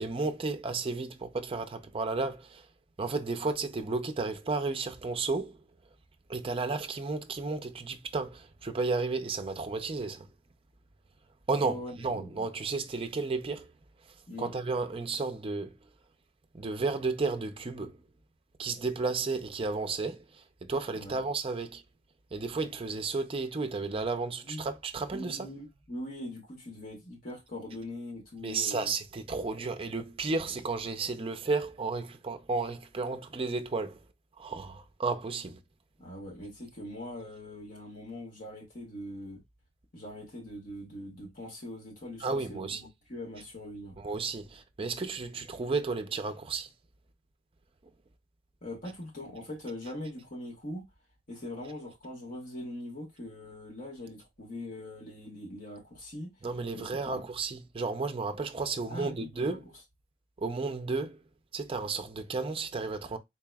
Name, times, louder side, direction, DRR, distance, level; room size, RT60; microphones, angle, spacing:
voice 1, 0.0-2.7 3.0-5.6 6.3-10.3 11.5-13.7 14.4-15.8 16.5-18.0 18.6-21.8 22.3-25.5 28.4-34.0 34.4-35.6 42.2-42.8 44.0-46.7 56.4-59.7 60.4-61.2 61.5-63.2, right 3 dB, 30° right, 0.5 m, -33 dB
voice 2, 11.6-12.3 14.3-14.5 20.9-21.2 24.4-24.7 25.1-28.9 36.0-39.4 39.9-44.0 48.6-50.9 51.3-56.3 56.7-57.2 58.9-59.6, left 1 dB, 50° left, 1.6 m, -42 dB
4.0 x 2.9 x 2.2 m
head